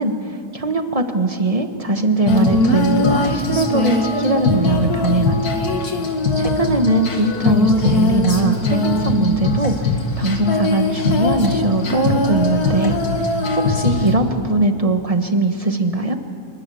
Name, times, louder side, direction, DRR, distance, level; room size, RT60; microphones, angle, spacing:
voice 1, 0.0-5.6 6.3-13.0 13.5-16.1, right 2 dB, 20° right, 6 dB, 1.3 m, -20 dB
Female singing, 2.3-14.1, left 2 dB, 65° left, 2.5 m, -20 dB
25.5 x 22.5 x 7.1 m, 2.5 s
omnidirectional pair, 1.8 m